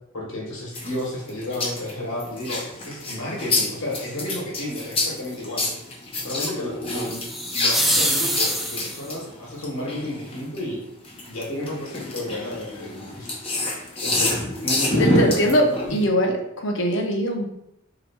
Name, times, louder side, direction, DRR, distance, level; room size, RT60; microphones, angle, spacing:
voice 1, 0.1-5.7 6.2-7.2 7.5-10.8 11.2-13.3 14.0-14.4 14.6-15.9, left 1 dB, 80° left, -3 dB, 1.3 m, -31 dB
sound 1, 0.7-10.6 11.0-16.1, left 2 dB, 25° left, 0.7 m, -27 dB
sound 2, 7.0-9.2, equal, ahead, 0.4 m, -25 dB
voice 2, 15.0-17.5, equal, 60° left, 2 dB, 0.7 m, -22 dB
2.9 x 2.3 x 4.2 m, 0.80 s
head